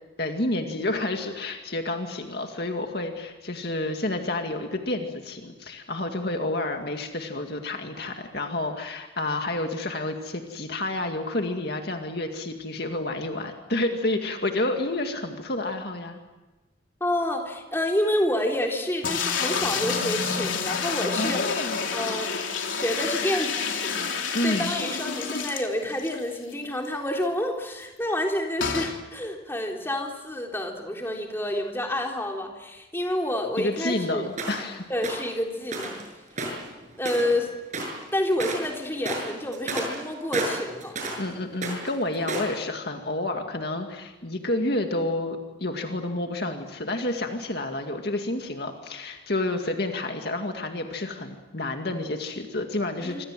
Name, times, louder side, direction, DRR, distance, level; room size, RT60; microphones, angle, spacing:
voice 1, 0.2-16.2 21.2-21.8 24.3-24.7 33.6-34.8 41.2-53.2, left 2 dB, 55° left, 4 dB, 2.1 m, -29 dB
voice 2, 17.0-21.4 21.9-22.3 22.6-34.2 34.9-36.0 37.0-37.5 38.1-41.0 53.0-53.3, left 1 dB, 10° left, 1 dB, 3.6 m, -28 dB
sound 1, 19.0-26.2 26.5-26.6 26.8-26.9 28.6-29.0, left 5 dB, 85° left, 3.3 m, -28 dB
sound 2, 34.4-34.7 35.0-35.3 35.7-36.0 36.3-37.4 37.7-38.0 38.3-38.7 39.0-41.2 41.5-42.6, right 2 dB, 40° right, 6.9 m, -31 dB
26.5 x 26.0 x 7.6 m, 1.1 s
head